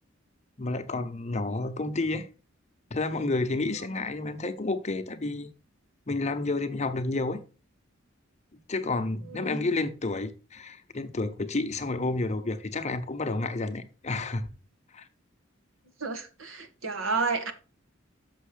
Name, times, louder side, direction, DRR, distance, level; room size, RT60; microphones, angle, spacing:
voice 1, 0.6-2.3 2.9-5.5 6.1-7.4 8.7-14.5 14.9-15.1, left 2 dB, 35° left, 0.8 m, -30 dB
voice 2, 9.3-9.7 16.0-17.5, right 4 dB, 85° right, 1.4 m, -31 dB
6.4 x 6.2 x 5.0 m
head